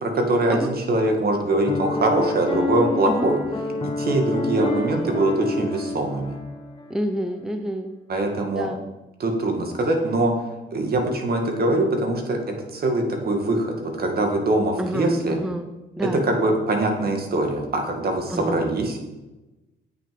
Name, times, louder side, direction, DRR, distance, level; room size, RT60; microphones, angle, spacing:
voice 1, 0.0-3.4 4.0-6.4 8.1-8.7 9.2-10.3 10.7-12.4 12.7-15.4 16.2-19.0, right 2 dB, 50° right, 3 dB, 2.0 m, -23 dB
Piano, 1.7-7.0, left 2 dB, 25° left, 1.2 m, -28 dB
voice 2, 6.9-7.9 8.5-8.8 14.8-15.7 16.0-16.2 18.3-18.7, equal, 5° right, 7 dB, 0.7 m, -28 dB
8.6 x 6.3 x 5.2 m, 1.0 s
cardioid pair, 90°, 20 cm